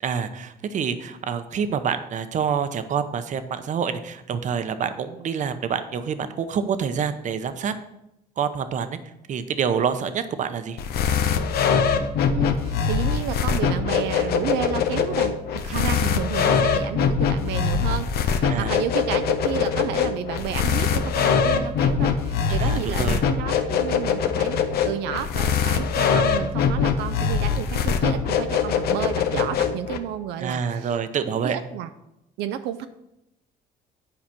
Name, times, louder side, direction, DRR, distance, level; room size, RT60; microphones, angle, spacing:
voice 1, 0.0-7.7 8.4-9.0 9.3-10.8 18.4-18.7 22.6-23.3 30.4-31.6, right 7 dB, 45° right, 10 dB, 0.8 m, -27 dB
sound 1, 10.8-30.0, left 6 dB, 70° left, 0.9 m, -23 dB
voice 2, 12.3-31.9 32.4-32.9, right 10 dB, 85° right, 9 dB, 0.5 m, -31 dB
8.8 x 5.0 x 5.8 m, 0.87 s
cardioid pair, 110°, 17 cm